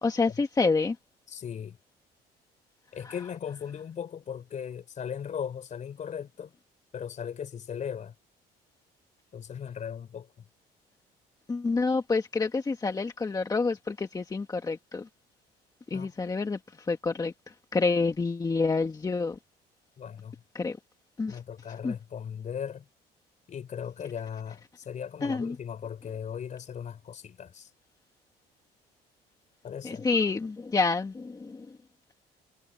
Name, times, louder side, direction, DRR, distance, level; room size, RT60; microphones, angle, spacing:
voice 1, 0.0-1.0 3.1-3.2 11.5-15.1 15.9-19.4 20.6-20.8 21.2-21.4 21.8-22.0 25.2-25.6 29.8-31.8, left 4 dB, 20° left, 1.7 m, -28 dB
voice 2, 1.3-1.8 2.9-6.5 6.9-8.1 9.3-10.5 15.9-16.1 20.0-20.4 21.3-22.9 23.5-27.7 29.6-30.1, left 8 dB, 45° left, 4.4 m, -38 dB
cardioid pair, 110°, 17 cm